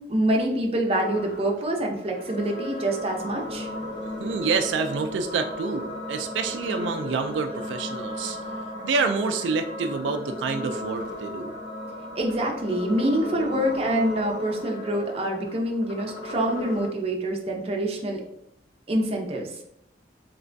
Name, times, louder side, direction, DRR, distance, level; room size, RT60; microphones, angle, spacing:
voice 1, 0.0-3.7 12.2-18.2 18.9-19.5, right 1 dB, 35° right, 1 dB, 0.5 m, -26 dB
sound 1, 0.9-16.9, left 1 dB, 70° left, 1.1 m, -35 dB
voice 2, 4.2-8.4 8.8-11.6, right 4 dB, 90° right, 6 dB, 0.3 m, -27 dB
3.2 x 3.0 x 2.5 m, 0.79 s
head